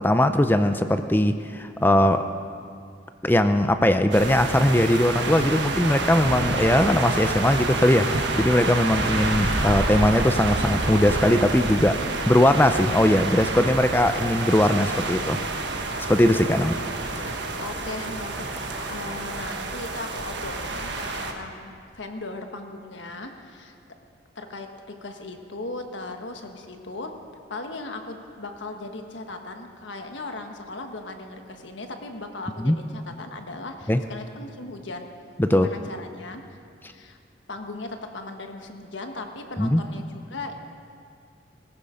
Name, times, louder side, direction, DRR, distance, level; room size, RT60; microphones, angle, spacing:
voice 1, 0.0-2.2 3.2-12.0 12.3-15.4 16.0-16.7 32.6-32.8 33.9-34.0 35.4-35.7 39.6-39.8, left 1 dB, 10° left, 9 dB, 0.4 m, -20 dB
sound 1, 4.1-21.3, right 2 dB, 65° right, 1.4 m, -28 dB
voice 2, 17.6-18.3 18.9-23.7 24.3-27.1 27.5-35.1 35.5-36.4 36.9-37.2 37.5-40.5, left 2 dB, 75° left, 5 dB, 1.4 m, -37 dB
18.5 x 15.5 x 5.1 m, 2.3 s
head